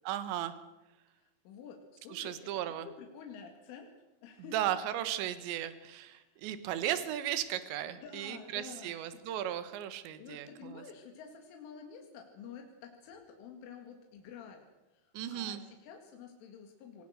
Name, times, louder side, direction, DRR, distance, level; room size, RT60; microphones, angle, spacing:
voice 1, 0.1-0.5 2.1-2.9 4.5-10.8 15.1-15.6, right 11 dB, 75° right, 11 dB, 3.5 m, -36 dB
voice 2, 1.2-3.9 4.2-4.6 6.1-6.3 7.9-9.2 10.2-14.7 14.9-17.0, left 6 dB, 80° left, 3 dB, 4.7 m, -50 dB
25.0 x 20.0 x 6.5 m, 1.0 s
omnidirectional pair, 5.5 m